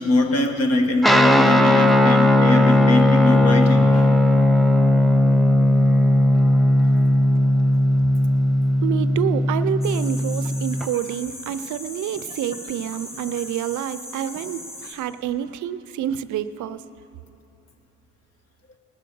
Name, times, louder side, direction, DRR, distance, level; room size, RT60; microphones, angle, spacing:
voice 1, 0.0-4.2, left 2 dB, 55° left, 5 dB, 1.4 m, -22 dB
Guitar, 1.0-10.8, left 1 dB, ahead, 0.5 m, -17 dB
voice 2, 8.8-16.8, right 10 dB, 75° right, 14 dB, 0.5 m, -28 dB
sound 1, 9.8-14.9, left 1 dB, 20° left, 3.1 m, -38 dB
18.5 x 7.7 x 6.8 m, 2.8 s
cardioid pair, 90°, 30 cm